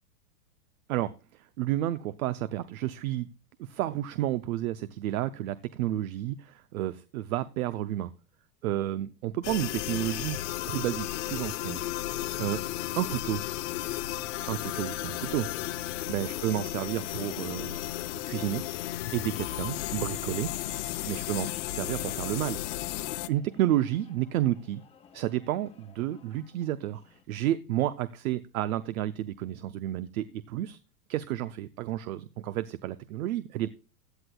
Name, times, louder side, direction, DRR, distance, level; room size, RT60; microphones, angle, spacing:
voice 1, 0.9-3.3 3.6-8.1 8.6-10.4 10.7-11.8 12.4-12.6 13.0-13.4 14.5-15.5 16.1-17.8 18.2-18.6 19.1-20.5 21.1-22.6 23.3-24.8 25.1-27.0 27.3-30.8 31.1-33.7, right 13 dB, 60° right, 13 dB, 0.7 m, -31 dB
sound 1, 9.4-23.3, left 15 dB, 50° left, 0.6 m, -34 dB
sound 2, 9.9-27.2, left 7 dB, 15° left, 0.7 m, -56 dB
sound 3, 11.8-22.4, equal, 85° right, 2.6 m, -57 dB
16.0 x 9.7 x 2.3 m, 0.34 s
supercardioid pair, 150°, 47 cm